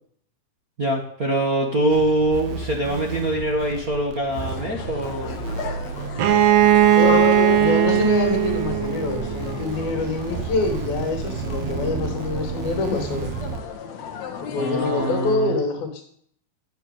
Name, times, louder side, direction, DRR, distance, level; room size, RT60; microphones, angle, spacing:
voice 1, 0.8-5.4 14.6-15.6, right 1 dB, 45° right, 0 dB, 1.1 m, -24 dB
sound 1, 1.9-13.6, right 6 dB, 60° right, 2.0 m, -32 dB
sound 2, 4.4-15.4, left 8 dB, 60° left, 2.3 m, -32 dB
Bowed string instrument, 6.2-9.9, right 11 dB, 80° right, 3.0 m, -18 dB
voice 2, 6.9-7.3 7.6-13.3 14.4-16.0, left 4 dB, 75° left, 3 dB, 4.6 m, -26 dB
13.0 x 7.9 x 9.4 m, 0.65 s
omnidirectional pair, 4.3 m